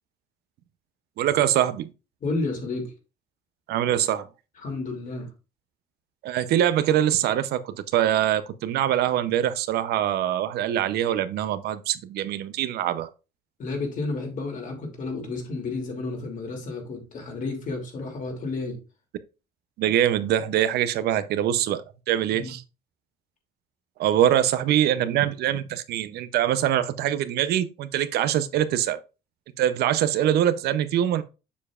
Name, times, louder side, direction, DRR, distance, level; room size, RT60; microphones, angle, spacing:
voice 1, 1.2-1.9 3.7-4.2 6.2-13.1 19.8-22.6 24.0-29.0 29.6-31.2, right 11 dB, 70° right, 0.7 m, -23 dB
voice 2, 2.2-2.9 4.6-5.3 13.6-18.8 22.3-22.5, left 3 dB, 50° left, 2.7 m, -31 dB
7.1 x 6.7 x 2.4 m
cardioid pair, 110°, 17 cm